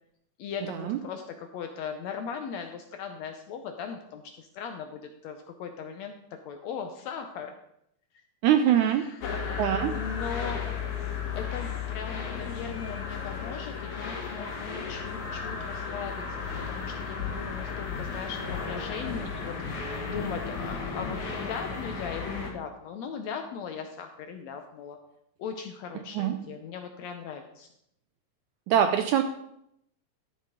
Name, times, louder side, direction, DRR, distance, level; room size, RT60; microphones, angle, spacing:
voice 1, 0.4-7.5 8.7-9.4 9.9-10.6 11.4-16.2 16.6-19.6 20.1-25.0 25.4-27.7, left 6 dB, 80° left, 6 dB, 1.6 m, -38 dB
voice 2, 8.4-9.0 9.6-9.9 26.1-26.4 28.7-29.2, right 10 dB, 80° right, 8 dB, 1.8 m, -23 dB
sound 1, 9.2-22.5, left 5 dB, 65° left, 2.9 m, -34 dB
12.5 x 7.3 x 3.8 m, 0.75 s
omnidirectional pair, 3.9 m